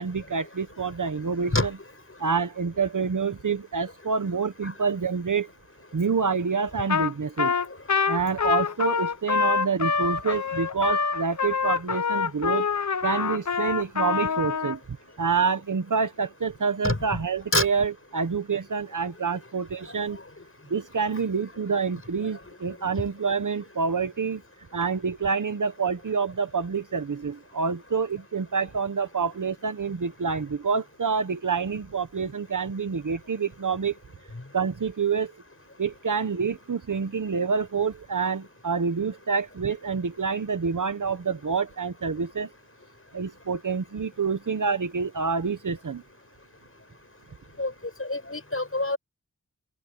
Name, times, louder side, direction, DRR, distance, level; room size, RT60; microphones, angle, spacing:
voice 1, 0.0-1.7 2.2-5.5 5.9-7.5 8.1-12.7 13.0-14.8 15.2-20.2 20.7-24.4 24.7-33.9 34.5-35.3 35.8-42.5 43.1-46.0, right 5 dB, 70° right, 1.1 m, -27 dB
Trumpet, 6.9-7.1 7.4-14.8, left 5 dB, 60° left, 0.8 m, -25 dB
voice 2, 48.0-49.0, left 2 dB, 45° left, 6.9 m, -26 dB
open air
wide cardioid pair, 70°, 32 cm